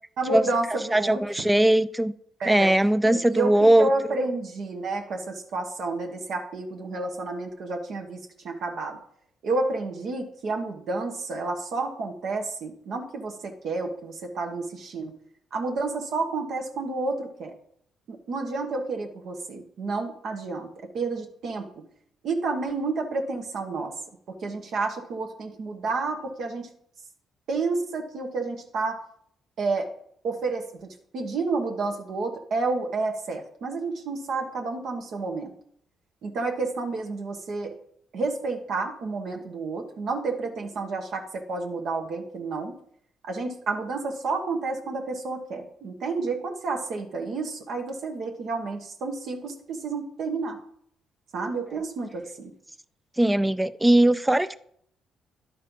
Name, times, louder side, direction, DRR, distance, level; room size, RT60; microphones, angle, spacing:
voice 1, 0.2-1.2 2.4-2.7 3.0-9.0 9.4-15.1 15.5-17.5 18.1-21.7 22.2-23.9 24.3-26.7 27.5-29.0 29.6-29.9 30.2-35.5 36.2-37.7 38.1-42.7 43.2-50.6 51.3-52.5, right 3 dB, 65° right, 3 dB, 1.2 m, -30 dB
voice 2, 0.9-2.1 2.4-3.9 53.2-54.6, right 1 dB, 10° right, 13 dB, 0.3 m, -20 dB
11.0 x 4.3 x 5.4 m, 0.67 s
cardioid pair, 90°, 0 cm